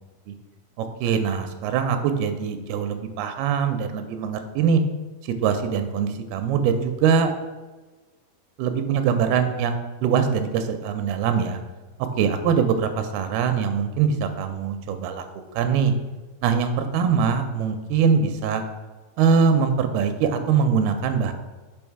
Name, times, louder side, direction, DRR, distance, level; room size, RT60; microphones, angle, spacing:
voice 1, 0.8-4.8 5.2-7.3 8.6-11.6 12.2-15.3 15.5-15.9 16.4-18.6 19.2-21.3, right 6 dB, 85° right, 8 dB, 2.4 m, -22 dB
6.2 x 3.6 x 4.5 m, 1.3 s
omnidirectional pair, 4.4 m